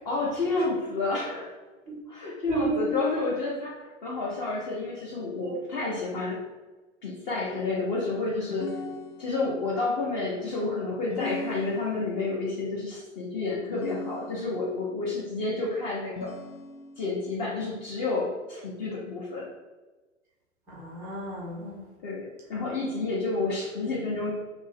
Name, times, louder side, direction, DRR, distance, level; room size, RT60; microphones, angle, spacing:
voice 1, 0.0-1.6 2.1-6.4 7.0-8.7 9.2-16.3 17.0-19.5 22.0-24.3, left 3 dB, 35° left, -5 dB, 0.7 m, -30 dB
voice 2, 2.5-3.0 5.4-5.5 20.7-21.8, right 2 dB, 10° right, -6 dB, 0.4 m, -32 dB
sound 1, 8.5-9.6 11.1-12.3 13.7-14.8 16.2-17.1, left 4 dB, 85° left, 0.5 m, -38 dB
2.8 x 2.6 x 3.2 m, 1.2 s
figure-of-eight pair, 105°, 39 cm